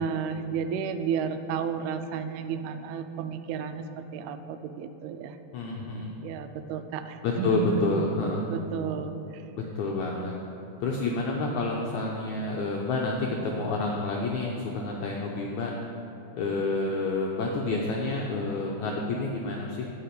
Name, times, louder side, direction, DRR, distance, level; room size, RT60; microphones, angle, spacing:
voice 1, 0.0-5.4 6.2-8.1 8.5-9.4, right 7 dB, 90° right, 9 dB, 2.6 m, -32 dB
voice 2, 5.5-6.2 7.2-8.5 9.7-10.3 10.8-15.7 16.3-19.9, left 3 dB, 80° left, -2 dB, 1.7 m, -29 dB
10.0 x 5.7 x 8.3 m, 3.0 s
omnidirectional pair, 4.4 m